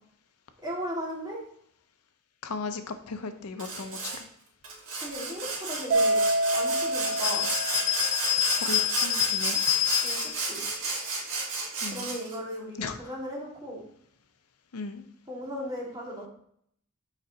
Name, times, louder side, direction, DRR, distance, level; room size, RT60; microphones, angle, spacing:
voice 1, 0.6-1.4 5.0-6.2 6.5-7.5 10.0-10.7 11.9-13.8 15.3-16.3, equal, 20° right, -3 dB, 1.8 m, -36 dB
voice 2, 2.4-4.3 8.5-9.6 11.8-12.1 12.8-13.0 14.7-15.1, left 4 dB, 80° left, 9 dB, 0.6 m, -36 dB
Sawing, 3.6-4.2 4.6-12.4, right 3 dB, 65° right, 1.9 m, -32 dB
Mallet percussion, 5.9-8.3, right 1 dB, 45° right, 1.0 m, -27 dB
sound 1, 7.1-10.4, left 13 dB, 35° left, 0.7 m, -27 dB
7.0 x 5.1 x 2.8 m, 0.66 s
head